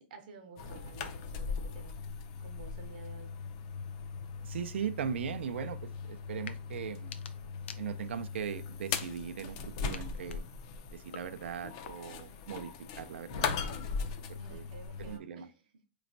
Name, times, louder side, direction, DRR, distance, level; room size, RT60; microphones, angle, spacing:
voice 1, 0.0-3.3 14.4-15.9, right 4 dB, 45° right, 0.7 m, -52 dB
sound 1, 0.6-15.2, left 5 dB, 30° left, 0.3 m, -39 dB
voice 2, 4.4-7.1 7.8-10.4 10.9-13.8 14.3-14.6 15.0-15.5, right 8 dB, 85° right, 0.4 m, -39 dB
sound 2, 6.4-6.6 6.9-8.3 8.8-9.5 9.9-12.3, left 7 dB, 90° left, 0.5 m, -51 dB
4.3 x 3.0 x 2.5 m
supercardioid pair, 175°, 6 cm